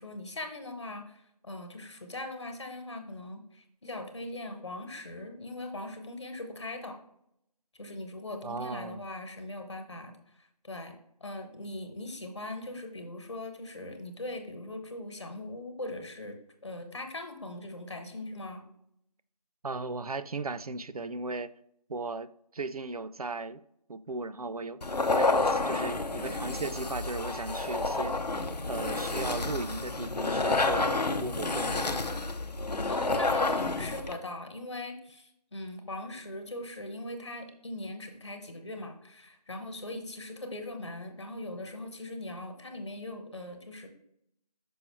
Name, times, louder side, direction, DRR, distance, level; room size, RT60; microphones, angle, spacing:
voice 1, 0.0-7.0 7.7-10.1 10.4-10.9 11.2-16.4 16.6-18.6 32.9-43.9, left 2 dB, 45° left, 1.1 m, -40 dB
voice 2, 8.4-9.1 19.6-21.5 21.9-23.6 23.9-24.8 25.1-28.2 28.7-32.0, right 3 dB, 65° right, 0.4 m, -36 dB
sound 1, 24.8-34.1, left 3 dB, 85° left, 0.7 m, -29 dB
6.2 x 5.2 x 3.1 m
figure-of-eight pair, 165°, 21 cm